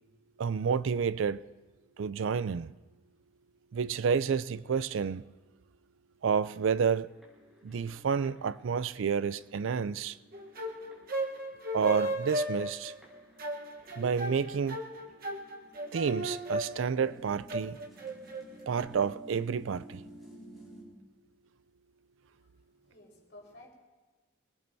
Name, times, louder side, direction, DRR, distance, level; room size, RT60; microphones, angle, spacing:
voice 1, 0.4-1.4 2.0-2.7 3.7-5.2 6.2-7.1 7.6-10.2 11.7-12.9 14.0-14.8 15.9-17.8 18.7-20.0, right 6 dB, 75° right, 0.4 m, -30 dB
sound 1, 7.1-20.8, equal, ahead, 5.8 m, -55 dB
sound 2, 10.3-18.8, right 1 dB, 45° right, 1.2 m, -36 dB
voice 2, 22.9-23.7, left 2 dB, 55° left, 4.6 m, -54 dB
27.0 x 19.5 x 2.7 m
head